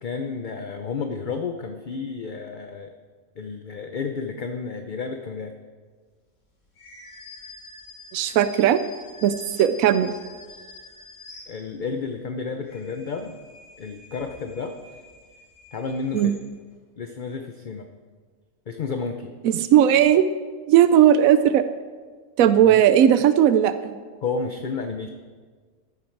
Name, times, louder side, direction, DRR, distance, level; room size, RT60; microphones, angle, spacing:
voice 1, 0.0-2.9 3.4-5.5 11.5-13.4 13.8-14.7 15.7-16.3 17.0-17.9 18.7-19.3 22.6-22.8 24.2-25.1, left 5 dB, 45° left, 5 dB, 0.7 m, -31 dB
sound 1, 6.7-12.0 12.5-16.7, left 3 dB, 65° left, 3.1 m, -46 dB
voice 2, 8.1-8.8 9.2-10.1 16.1-16.3 19.4-20.3 20.7-21.6 22.4-24.0, right 10 dB, 80° right, 12 dB, 1.0 m, -17 dB
14.5 x 11.5 x 4.6 m, 1.5 s
omnidirectional pair, 1.4 m